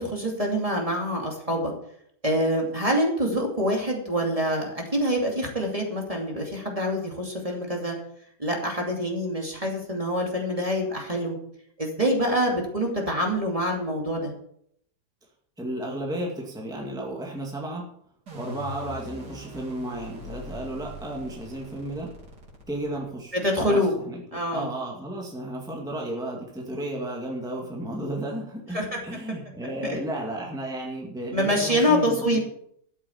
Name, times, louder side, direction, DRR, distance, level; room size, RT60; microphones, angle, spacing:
voice 1, 0.0-1.7 2.2-8.0 8.4-11.3 11.8-14.3 23.3-23.9 24.3-24.7 28.7-29.0 29.9-30.0 31.3-32.4, equal, 20° right, 0 dB, 2.6 m, -25 dB
voice 2, 15.6-17.9 18.3-22.1 22.7-32.4, right 1 dB, ahead, -2 dB, 2.2 m, -33 dB
sound 1, 18.3-23.3, left 1 dB, 90° right, 3.9 m, -42 dB
13.5 x 7.3 x 7.2 m, 0.69 s
omnidirectional pair, 1.8 m